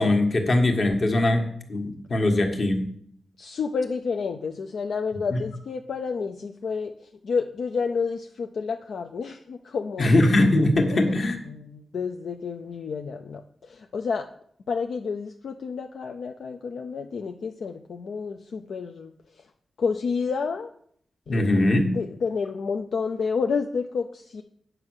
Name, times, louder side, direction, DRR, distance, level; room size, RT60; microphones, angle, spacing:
voice 1, 0.0-2.9 5.3-5.4 10.0-11.4 21.3-21.9, left 1 dB, 40° left, 4 dB, 1.5 m, -21 dB
voice 2, 3.4-10.1 10.9-11.2 11.5-14.3 14.7-19.4 19.8-20.7 21.3-21.7 21.9-24.4, left 5 dB, 60° left, 6 dB, 0.5 m, -30 dB
9.1 x 6.5 x 6.3 m, 0.64 s
wide cardioid pair, 175°, 0 cm